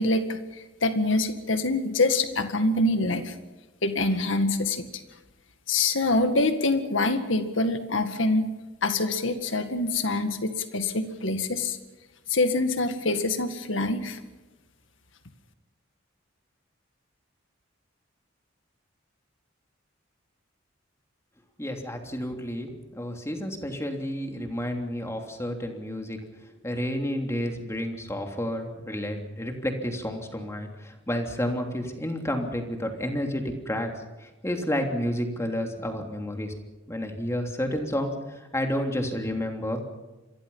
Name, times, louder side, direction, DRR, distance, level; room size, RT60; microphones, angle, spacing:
voice 1, 0.0-3.3 3.8-4.9 5.7-8.5 8.8-11.8 12.3-14.2, left 2 dB, 75° left, 8 dB, 2.0 m, -25 dB
voice 2, 21.6-22.7 23.0-26.2 26.6-33.9 34.4-36.5 36.9-38.1 38.5-39.8, equal, 15° left, 3 dB, 3.1 m, -30 dB
27.5 x 23.0 x 5.7 m, 1.1 s
head